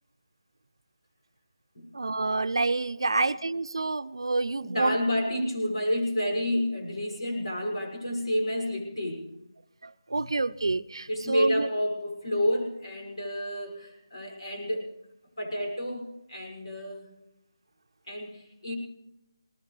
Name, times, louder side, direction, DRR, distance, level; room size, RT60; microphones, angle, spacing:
voice 1, 1.9-5.0 9.8-11.7, right 3 dB, 80° right, 13 dB, 0.6 m, -28 dB
voice 2, 4.6-9.2 11.1-14.9 15.4-17.1 18.1-18.7, left 1 dB, 85° left, -1 dB, 6.5 m, -30 dB
21.5 x 19.0 x 3.3 m, 0.87 s
figure-of-eight pair, 165°, 3 cm